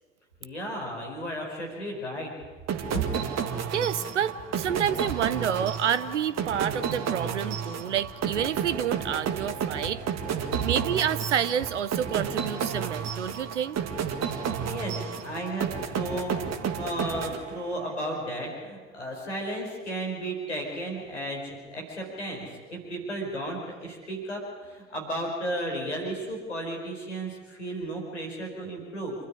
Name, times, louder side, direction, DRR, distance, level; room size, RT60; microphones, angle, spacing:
voice 1, 0.4-2.3 2.9-3.0 10.4-10.7 14.4-29.1, right 1 dB, 90° left, -1 dB, 4.9 m, -34 dB
sound 1, 2.7-18.0, right 7 dB, 50° right, 2.0 m, -32 dB
voice 2, 3.7-10.0 10.6-13.8, right 9 dB, 85° right, 15 dB, 0.6 m, -29 dB
28.0 x 12.5 x 9.9 m, 1.4 s
figure-of-eight pair, 50°, 35 cm